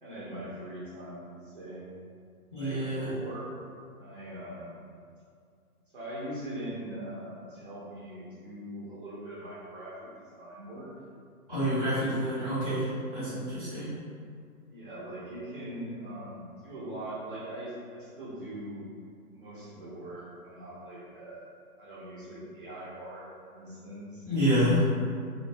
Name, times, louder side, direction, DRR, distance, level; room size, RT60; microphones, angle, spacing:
voice 1, 0.0-1.9 2.6-3.6 4.0-4.7 5.9-10.1 10.3-10.9 14.7-18.9 19.3-21.5 21.8-24.2, right 1 dB, 35° right, -10 dB, 0.6 m, -41 dB
voice 2, 2.5-3.1 11.5-13.9 24.2-24.8, equal, 10° left, -20 dB, 0.6 m, -28 dB
2.5 x 2.2 x 2.6 m, 2.2 s
hypercardioid pair, 155°, 46 cm